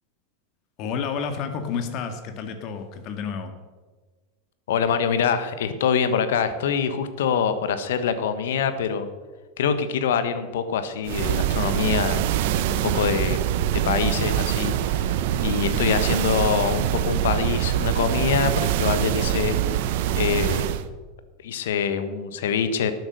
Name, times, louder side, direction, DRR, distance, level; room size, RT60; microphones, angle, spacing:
voice 1, 0.8-3.5, left 6 dB, 50° left, 7 dB, 1.8 m, -30 dB
voice 2, 4.7-9.1 9.6-12.3 12.7-13.4 13.8-14.9 15.4-19.6 20.2-20.7 21.4-22.9, left 7 dB, 70° left, 11 dB, 1.2 m, -24 dB
sound 1, 11.1-20.9, right 11 dB, 60° right, 0.7 m, -24 dB
11.5 x 9.3 x 6.5 m, 1.3 s
hypercardioid pair, 85°, 0 cm